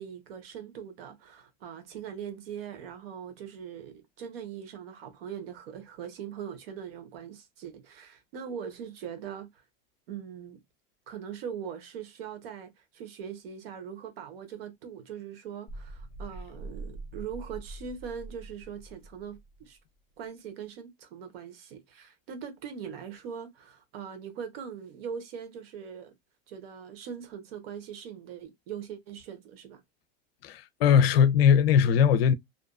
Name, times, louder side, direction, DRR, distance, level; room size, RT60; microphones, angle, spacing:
voice 1, 0.0-9.6 10.1-10.6 11.1-19.8 20.2-26.1 26.5-29.8, right 8 dB, 80° right, 0.9 m, -41 dB
sound 1, 15.7-19.7, right 2 dB, 10° left, 0.8 m, -43 dB
voice 2, 30.4-32.3, left 8 dB, 85° left, 0.5 m, -20 dB
2.6 x 2.2 x 2.4 m
supercardioid pair, 125°, 29 cm